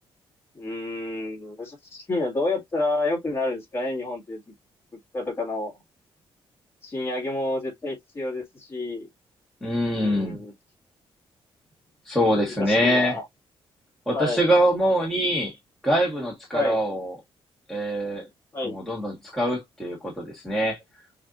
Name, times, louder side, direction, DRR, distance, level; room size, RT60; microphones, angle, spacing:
voice 1, 0.5-4.4 5.1-5.7 6.8-9.1 9.9-10.5 12.4-13.3 14.1-14.4 16.5-16.8 18.5-18.8, left 2 dB, 25° left, 2.0 m, -29 dB
voice 2, 9.6-10.4 12.1-13.2 14.1-15.5 15.8-17.1 17.7-18.2 18.6-20.8, equal, 5° left, 1.4 m, -24 dB
6.5 x 2.6 x 2.5 m
cardioid pair, 165°, 10 cm